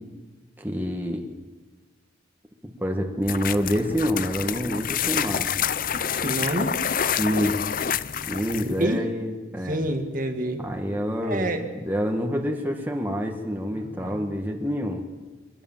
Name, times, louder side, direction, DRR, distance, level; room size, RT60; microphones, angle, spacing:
voice 1, 0.6-1.2 2.6-5.6 7.2-7.6 8.3-9.8 10.6-15.0, equal, 10° right, 1 dB, 1.8 m, -27 dB
sound 1, 3.2-8.8, left 8 dB, 45° left, 0.6 m, -28 dB
voice 2, 6.2-6.7 8.6-9.0 9.7-10.6 11.2-11.7 13.7-14.2, right 1 dB, 45° right, 5 dB, 1.9 m, -27 dB
24.0 x 19.0 x 7.5 m, 1.3 s
head